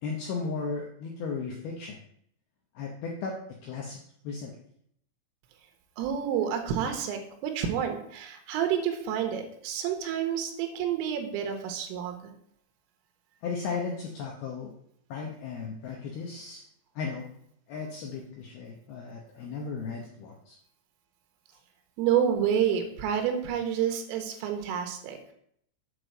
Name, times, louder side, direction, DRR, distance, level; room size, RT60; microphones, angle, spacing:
voice 1, 0.0-2.0 2.8-3.4 3.6-4.0 4.2-4.5 13.4-14.7 15.1-16.6 17.0-17.3 17.7-20.6, left 5 dB, 85° left, 0 dB, 2.1 m, -35 dB
voice 2, 6.0-12.3 22.0-25.3, right 8 dB, 85° right, 5 dB, 3.5 m, -29 dB
8.2 x 5.0 x 6.2 m, 0.68 s
omnidirectional pair, 5.9 m